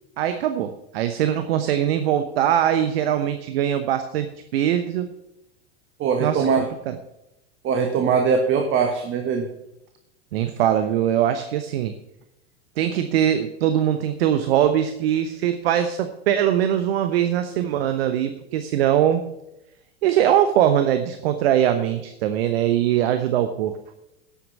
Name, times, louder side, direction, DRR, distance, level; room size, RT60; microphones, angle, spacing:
voice 1, 0.2-4.3 4.5-5.1 6.2-6.9 10.3-11.9 12.8-19.3 20.0-23.8, right 10 dB, 65° right, 9 dB, 1.1 m, -22 dB
voice 2, 6.0-6.7 7.6-9.5, right 6 dB, 40° right, 5 dB, 1.6 m, -21 dB
12.0 x 8.5 x 5.5 m, 0.89 s
hypercardioid pair, 85°, 32 cm